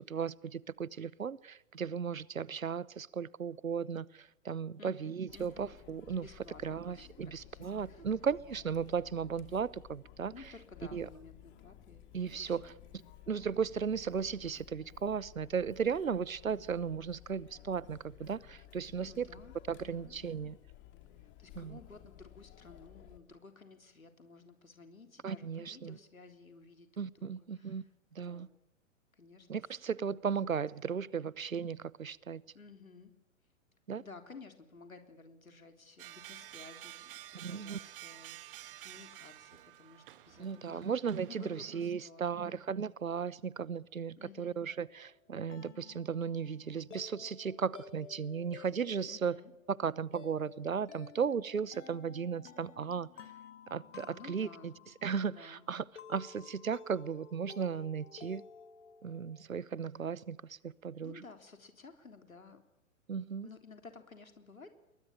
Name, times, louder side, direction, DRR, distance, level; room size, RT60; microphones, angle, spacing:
voice 1, 0.1-6.3 6.6-10.3 10.9-11.1 12.1-12.7 13.3-19.3 19.7-20.6 21.6-21.8 25.2-26.0 27.0-27.8 28.1-28.5 29.5-32.4 33.9-34.0 37.4-37.8 40.4-49.4 49.7-53.1 53.7-54.7 55.0-58.4 59.0-61.2 63.1-63.5, right 6 dB, 80° right, 1.0 m, -36 dB
voice 2, 4.8-5.6 6.1-8.0 10.3-12.1 12.4-12.8 19.0-19.6 19.9-20.2 21.1-27.9 28.2-28.5 29.1-29.7 30.9-31.3 32.5-33.1 34.0-40.9 41.2-42.6 44.2-44.6 49.1-49.5 54.0-54.7 55.3-55.7 61.0-62.6 63.4-64.7, left 4 dB, 80° left, 3.6 m, -54 dB
Chatter, 5.3-23.2, left 13 dB, 25° left, 2.8 m, -56 dB
sound 1, 36.0-41.9, right 15 dB, 40° right, 1.8 m, -51 dB
sound 2, 44.7-59.4, left 6 dB, 60° left, 3.5 m, -54 dB
29.0 x 22.0 x 8.9 m
figure-of-eight pair, 110°, 41 cm